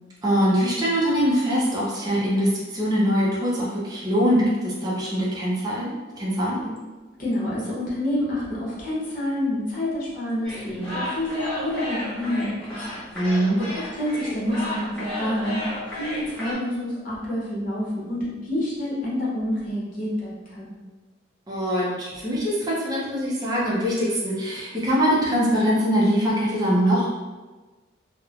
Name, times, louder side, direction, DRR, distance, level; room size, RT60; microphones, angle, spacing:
voice 1, 0.2-6.6 13.1-13.6 21.5-27.1, equal, 20° right, -6 dB, 0.5 m, -23 dB
voice 2, 7.2-12.9 13.3-13.4 13.9-20.7, left 1 dB, 45° left, -7 dB, 0.9 m, -28 dB
sound 1, 10.4-16.5, left 1 dB, 5° left, 0.9 m, -33 dB
3.0 x 2.0 x 2.4 m, 1.3 s
head